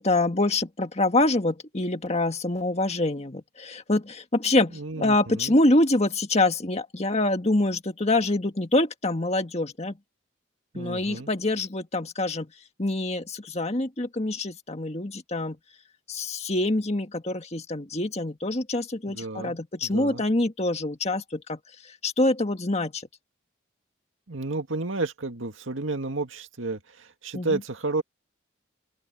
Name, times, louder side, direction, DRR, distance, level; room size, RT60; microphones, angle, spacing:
voice 1, 0.0-10.0 10.8-12.5 12.8-15.6 16.1-21.6 22.0-23.0 27.3-27.6, left 2 dB, 35° left, 1.7 m, -25 dB
voice 2, 4.7-5.6 10.7-11.3 19.1-20.2 24.3-28.0, right 3 dB, 90° right, 2.1 m, -32 dB
open air
head